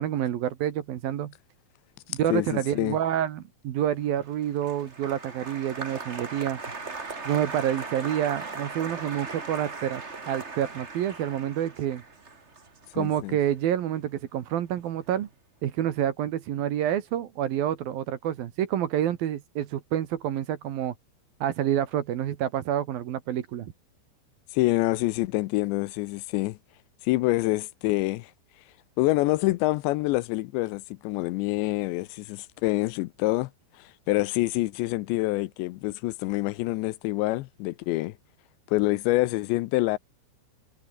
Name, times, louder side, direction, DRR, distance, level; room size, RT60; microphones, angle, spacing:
voice 1, 0.0-1.3 2.1-6.6 7.2-12.0 12.9-15.3 15.6-20.9 21.4-23.7, right 11 dB, 65° right, 2.9 m, -28 dB
voice 2, 2.3-3.0 13.0-13.4 24.5-26.6 27.0-28.3 29.0-33.5 34.1-38.1 38.7-40.0, left 19 dB, 90° left, 2.9 m, -26 dB
Applause, 4.0-14.4 14.7-15.3, right 4 dB, 30° right, 1.2 m, -39 dB
omnidirectional pair, 5.2 m